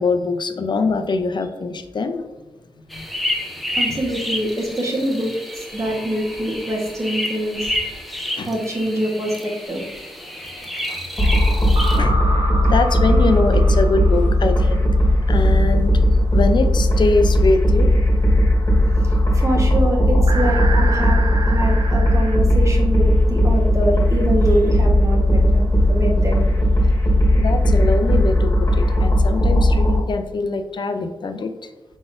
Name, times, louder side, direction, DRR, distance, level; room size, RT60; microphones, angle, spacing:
voice 1, 0.0-2.2 2.9-3.1 3.7-4.2 8.4-8.5 10.3-11.1 11.8-12.3 12.7-14.9 15.3-15.9 16.3-17.9 27.4-31.7, left 3 dB, 50° left, 7 dB, 0.5 m, -23 dB
sound 1, 2.9-12.0, left 1 dB, ahead, 0.7 m, -29 dB
voice 2, 3.7-7.7 8.5-9.8 19.0-26.5, right 1 dB, 30° right, -1 dB, 1.2 m, -24 dB
sound 2, 5.8-6.6 11.8-15.4 20.3-22.4, right 3 dB, 55° right, 0.6 m, -30 dB
sound 3, 11.2-30.0, equal, 35° left, 1.5 m, -17 dB
4.9 x 3.9 x 2.5 m, 1.2 s
cardioid pair, 70°, 10 cm